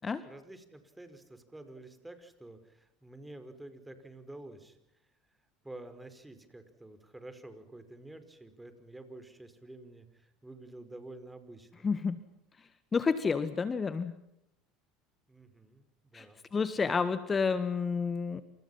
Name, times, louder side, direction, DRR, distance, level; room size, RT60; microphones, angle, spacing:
voice 1, 0.2-4.8 5.6-11.9 15.3-15.9 16.1-16.4 16.8-16.9, right 2 dB, 10° right, 9 dB, 5.2 m, -49 dB
voice 2, 11.8-12.2 12.9-14.1 16.1-16.3 16.5-18.4, left 5 dB, 25° left, 12 dB, 1.7 m, -30 dB
28.5 x 28.0 x 5.8 m, 0.79 s
hypercardioid pair, 75°, 0 cm